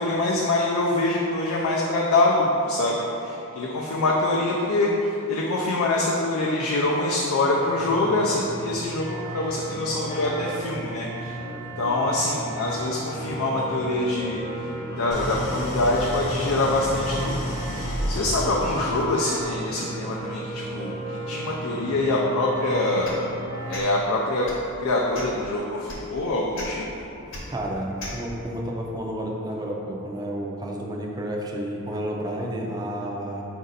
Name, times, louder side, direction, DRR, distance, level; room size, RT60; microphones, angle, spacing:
voice 1, 0.0-11.4 11.8-14.7 15.0-17.4 17.7-23.1 23.7-24.5 24.8-26.8, left 2 dB, 80° left, -3 dB, 0.4 m, -25 dB
sound 1, 7.5-23.8, right 2 dB, 75° right, 0.8 m, -35 dB
Idling, 15.1-19.3, left 1 dB, 35° left, 0.6 m, -31 dB
sound 2, 23.0-23.2 23.7-23.9 24.4-24.7 25.1-25.4 25.9-26.0 26.5-26.7 27.3-27.4 28.0-28.2, left 1 dB, 65° left, 1.0 m, -36 dB
voice 2, 27.5-33.5, right 1 dB, 20° right, -1 dB, 0.4 m, -31 dB
5.0 x 2.6 x 4.0 m, 2.9 s
head